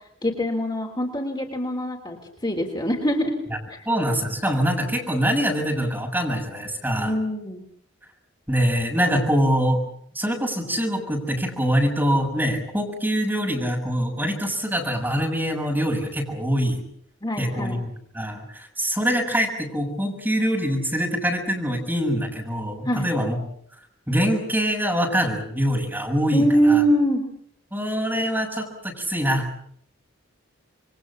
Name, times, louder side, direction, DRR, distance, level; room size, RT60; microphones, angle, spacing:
voice 1, 0.2-2.2 2.4-3.3 3.7-3.8 7.0-7.6 17.2-17.8 22.8-23.1 26.3-27.2, equal, 20° left, 2 dB, 3.4 m, -23 dB
voice 2, 3.9-7.1 8.5-9.8 10.2-16.8 17.4-23.4 24.1-26.8 27.7-29.5, equal, 10° right, 1 dB, 6.9 m, -24 dB
28.0 x 23.0 x 7.3 m, 0.67 s
head